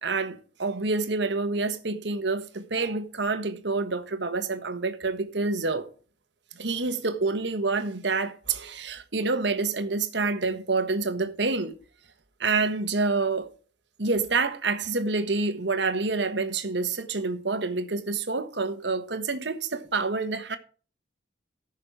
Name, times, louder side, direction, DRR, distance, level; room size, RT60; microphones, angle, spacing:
voice 1, 0.0-5.9 6.5-11.7 12.4-13.5 14.0-20.6, right 3 dB, 70° right, 1.3 m, -27 dB
14.5 x 6.5 x 4.8 m
head